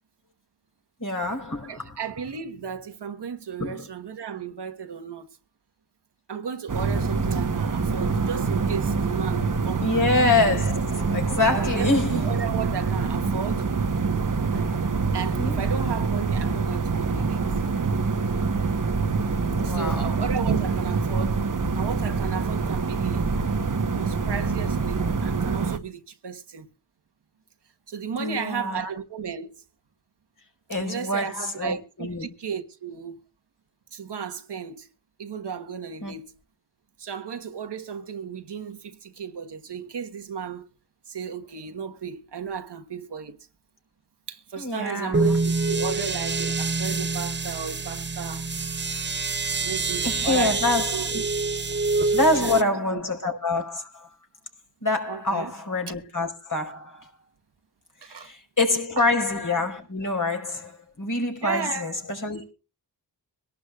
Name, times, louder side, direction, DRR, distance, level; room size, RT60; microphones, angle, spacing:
voice 1, 1.0-1.9 3.6-3.9 9.8-12.3 15.4-15.6 19.5-20.2 28.2-28.9 30.7-32.3 36.0-36.1 44.6-45.4 49.3-49.5 50.0-51.2 52.1-54.1 54.8-57.1 58.0-62.5, left 2 dB, 45° left, 5.0 m, -26 dB
voice 2, 1.7-5.3 6.3-10.1 11.5-13.7 14.5-14.6 15.1-17.5 19.4-23.3 23.9-26.7 27.9-29.5 30.8-33.1 33.9-34.9 35.2-36.3 37.0-40.7 41.1-43.4 44.3-48.5 49.6-50.7 50.9-51.3 52.0-52.6 52.9-53.0 55.1-55.5 58.0-58.3 59.0-59.1 61.4-61.9, right 6 dB, 65° right, 1.4 m, -34 dB
sound 1, 6.7-25.8, right 4 dB, 45° right, 1.3 m, -25 dB
sound 2, 45.1-52.6, right 3 dB, 25° right, 0.7 m, -26 dB
23.5 x 12.0 x 2.4 m
cardioid pair, 55°, 43 cm